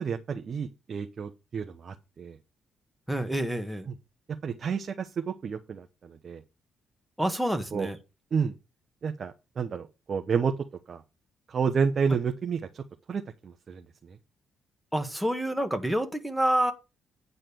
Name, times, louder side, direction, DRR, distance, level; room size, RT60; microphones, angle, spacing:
voice 1, 0.0-2.4 4.4-6.4 7.7-7.9 8.3-8.5 9.0-10.5 10.9-11.0 11.5-13.8, right 6 dB, 50° right, 0.9 m, -30 dB
voice 2, 3.1-3.9 7.2-8.0 14.9-16.7, right 1 dB, ahead, 1.7 m, -28 dB
9.2 x 4.1 x 6.9 m
cardioid pair, 90°, 0 cm